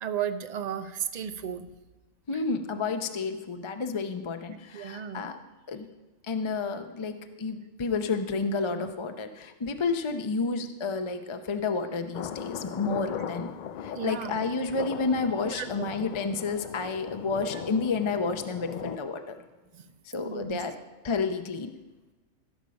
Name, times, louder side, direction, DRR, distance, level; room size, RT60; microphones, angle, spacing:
voice 1, 0.0-1.7 2.3-2.4 4.7-5.3 13.9-14.3 15.4-15.9 17.5-17.6 19.7-19.9 20.1-20.6, right 8 dB, 50° right, 11 dB, 0.5 m, -34 dB
voice 2, 2.3-5.4 5.7-5.9 6.3-13.5 13.8-19.3 20.0-20.7 21.0-21.7, left 4 dB, 30° left, 7 dB, 0.5 m, -30 dB
sound 1, 12.1-19.0, left 8 dB, 80° left, 0.4 m, -39 dB
16.0 x 7.1 x 5.2 m, 1.2 s
omnidirectional pair, 1.4 m